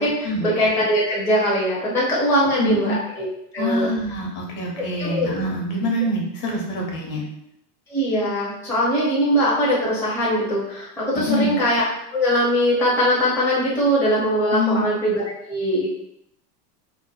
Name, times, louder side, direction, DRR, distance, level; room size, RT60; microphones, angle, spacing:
voice 1, 0.0-3.3 3.5-3.9 5.0-5.3 7.9-11.8 12.1-15.9, equal, 5° left, -7 dB, 0.4 m, -21 dB
voice 2, 2.6-3.0 3.6-7.2 11.2-11.5 14.5-14.8, equal, 55° left, -2 dB, 1.0 m, -25 dB
3.0 x 2.1 x 2.2 m, 0.77 s
supercardioid pair, 120°, 50 cm